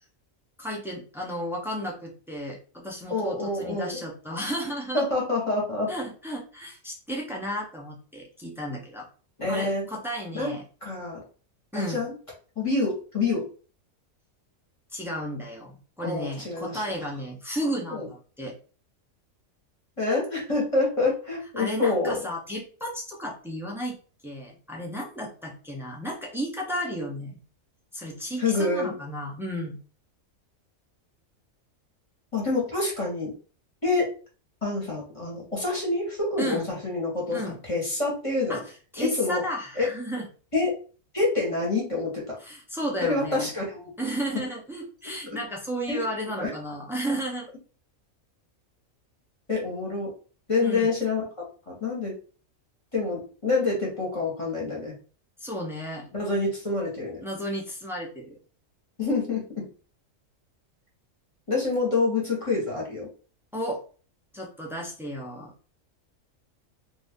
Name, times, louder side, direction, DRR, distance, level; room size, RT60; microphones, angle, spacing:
voice 1, 0.6-5.0 5.9-9.1 9.5-10.6 11.7-12.0 14.9-18.5 21.6-24.0 24.2-27.4 27.9-29.8 36.4-36.7 37.3-37.6 38.5-38.6 38.9-40.3 42.4-43.5 44.0-47.5 50.6-50.9 55.4-56.1 57.2-58.4 63.5-63.8 64.3-65.5, equal, 5° right, -2 dB, 0.4 m, -33 dB
voice 2, 3.1-4.0 4.9-5.9 9.4-9.9 10.3-10.5 10.8-11.2 11.7-12.1 12.6-13.5 16.0-16.8 17.9-18.1 20.0-22.2 28.4-29.0 32.3-33.3 33.8-34.1 34.6-38.6 39.0-39.4 39.7-39.8 40.5-40.8 41.1-42.4 43.0-43.9 45.9-46.0 46.4-46.5 49.5-50.1 50.5-51.2 51.7-52.1 52.9-55.0 56.1-57.2 59.0-59.6 61.5-63.1, left 3 dB, 25° left, -3 dB, 1.2 m, -27 dB
2.6 x 2.6 x 3.5 m, 0.38 s
omnidirectional pair, 1.4 m